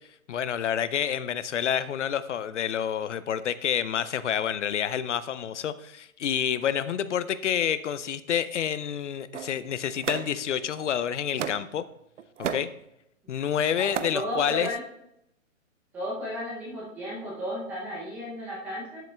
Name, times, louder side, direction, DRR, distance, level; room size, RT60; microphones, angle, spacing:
voice 1, 0.3-11.8 12.5-12.7 13.3-14.7, left 9 dB, 60° left, 15 dB, 0.5 m, -28 dB
sound 1, 9.3-10.8 11.4-11.8 12.2-12.7 13.5-14.2 14.5-14.7, right 8 dB, 65° right, 0.7 m, -34 dB
voice 2, 14.1-14.8 15.9-19.0, left 1 dB, 5° right, -5 dB, 0.6 m, -33 dB
12.5 x 7.6 x 2.3 m, 0.80 s
hypercardioid pair, 155°, 40 cm